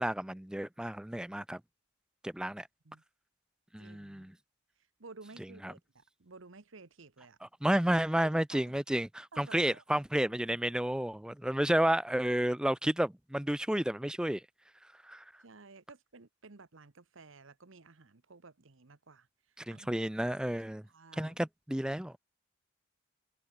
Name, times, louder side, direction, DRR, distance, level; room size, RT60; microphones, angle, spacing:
voice 1, 0.0-1.6 2.2-2.7 3.7-4.3 5.6-5.7 7.4-14.4 15.0-15.2 19.6-20.8 21.2-22.1, right 1 dB, 5° right, 0.3 m, -31 dB
voice 2, 3.8-4.3 5.0-7.4 8.2-8.8 9.3-9.8 15.4-19.3 19.7-19.9 20.3-20.6 20.9-21.4, right 3 dB, 65° right, 1.1 m, -54 dB
head